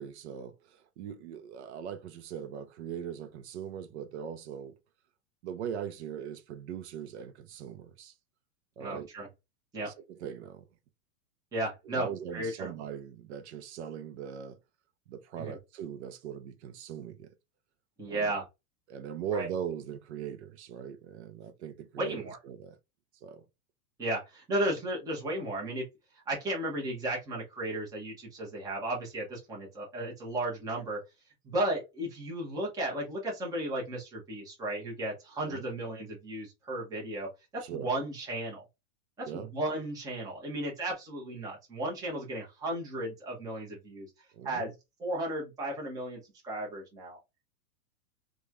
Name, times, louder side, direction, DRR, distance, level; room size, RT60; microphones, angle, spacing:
voice 1, 0.0-4.8 5.4-8.1 8.8-9.1 9.8-10.7 11.8-14.6 15.1-17.3 18.1-18.4 18.9-22.8 23.2-23.4 35.4-35.7 37.6-37.9 39.3-39.5 44.3-44.7, right 8 dB, 50° right, 0.5 m, -40 dB
voice 2, 8.8-9.3 9.7-9.9 11.5-12.7 15.4-15.6 18.0-18.4 19.3-19.5 22.0-22.4 24.0-25.8 26.3-31.0 31.4-37.3 37.5-38.6 39.2-44.1 44.4-44.7 45.0-47.2, right 1 dB, 10° right, 0.7 m, -34 dB
3.1 x 2.3 x 2.4 m
supercardioid pair, 145°, 46 cm